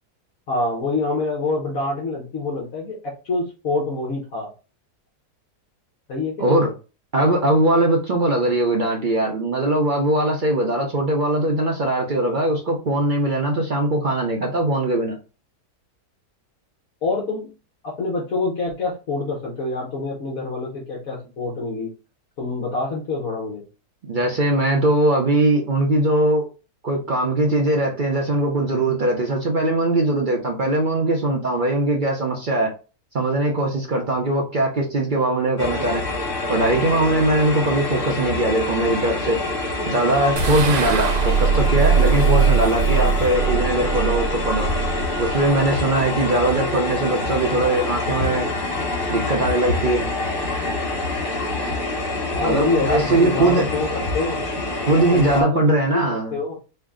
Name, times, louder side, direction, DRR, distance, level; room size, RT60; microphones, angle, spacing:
voice 1, 0.5-4.5 6.1-6.7 17.0-17.5 17.8-21.9 22.4-23.6 52.3-54.4 55.1-56.0 56.3-56.6, left 3 dB, 60° left, -4 dB, 1.5 m, -26 dB
voice 2, 6.4-6.7 7.1-15.2 24.1-26.5 26.8-32.7 33.1-36.0 36.5-39.4 39.8-44.7 45.2-48.5 49.1-50.1 52.4-53.7 54.8-56.4, right 1 dB, 45° right, 0 dB, 0.6 m, -20 dB
sound 1, 35.6-55.4, left 2 dB, 40° left, 1.1 m, -26 dB
sound 2, 40.4-45.7, right 6 dB, 90° right, 1.3 m, -21 dB
4.4 x 2.2 x 3.6 m, 0.33 s
omnidirectional pair, 1.7 m